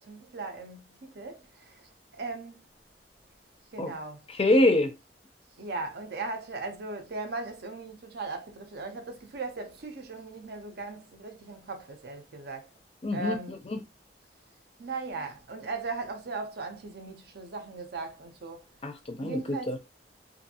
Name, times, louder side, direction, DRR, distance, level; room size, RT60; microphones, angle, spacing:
voice 1, 0.0-2.7 3.7-4.3 5.6-12.7 13.1-13.6 14.8-18.7 19.2-19.8, right 3 dB, 60° right, 0.6 m, -38 dB
voice 2, 4.4-4.9 13.0-13.4 18.8-19.4 19.7-19.8, left 1 dB, 35° left, 0.5 m, -24 dB
2.6 x 2.5 x 2.7 m
head